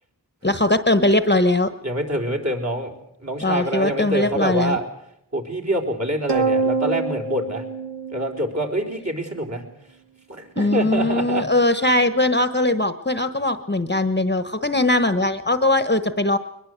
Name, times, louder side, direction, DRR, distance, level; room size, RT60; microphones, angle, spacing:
voice 1, 0.4-1.7 3.4-4.8 10.6-16.4, left 2 dB, 25° left, 11 dB, 1.1 m, -20 dB
voice 2, 1.8-2.9 3.2-4.8 5.3-7.6 8.1-9.6 10.3-11.4, right 1 dB, 40° right, 1 dB, 4.5 m, -25 dB
sound 1, 6.3-8.9, right 3 dB, 90° right, 1.1 m, -25 dB
22.5 x 20.5 x 8.1 m, 0.77 s
wide cardioid pair, 60°, 41 cm